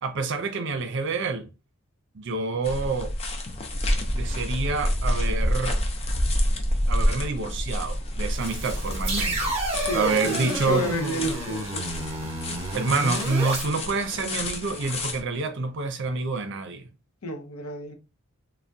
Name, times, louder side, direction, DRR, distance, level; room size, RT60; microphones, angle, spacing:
voice 1, 0.0-1.5 2.1-3.1 4.1-5.8 6.9-9.5 9.9-10.9 12.7-16.9, right 4 dB, 55° right, 0.5 m, -27 dB
sound 1, 2.6-15.2, left 1 dB, 30° left, 0.5 m, -28 dB
sound 2, 8.4-13.6, right 1 dB, 30° right, 0.9 m, -30 dB
voice 2, 9.8-11.8 17.2-17.9, equal, 85° left, 0.7 m, -30 dB
3.4 x 2.1 x 2.6 m
head